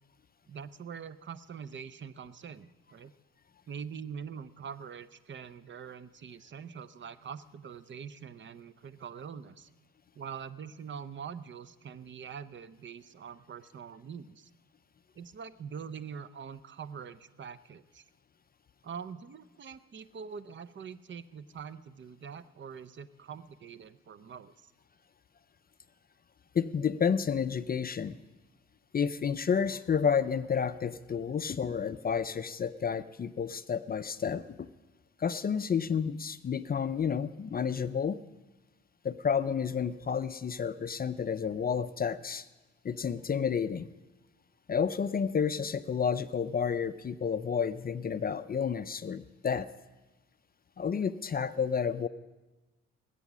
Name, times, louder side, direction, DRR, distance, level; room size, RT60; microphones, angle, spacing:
voice 1, 0.5-3.1 3.7-9.7 10.1-14.5 15.2-18.0 18.8-24.7, right 7 dB, 40° right, 15 dB, 0.7 m, -44 dB
voice 2, 26.5-28.2 28.9-34.7 35.2-38.2 39.0-42.5 42.8-43.9 44.7-49.7 50.8-52.1, left 7 dB, 30° left, 12 dB, 0.5 m, -30 dB
19.5 x 8.3 x 6.1 m, 1.1 s
cardioid pair, 90°, 30 cm